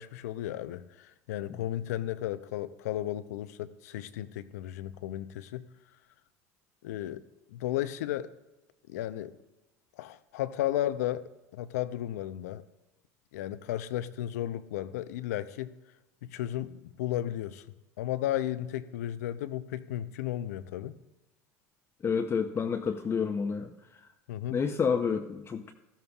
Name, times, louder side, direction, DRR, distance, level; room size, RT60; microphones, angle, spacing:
voice 1, 0.0-5.7 6.8-7.2 7.5-8.3 8.9-9.3 10.0-11.2 11.5-12.6 13.3-15.7 16.2-17.6 18.0-21.0 24.3-24.6, left 13 dB, 80° left, 14 dB, 0.6 m, -34 dB
voice 2, 22.0-23.7 24.5-25.7, left 6 dB, 30° left, 4 dB, 0.7 m, -29 dB
13.5 x 13.0 x 2.4 m, 0.98 s
hypercardioid pair, 90°, 8 cm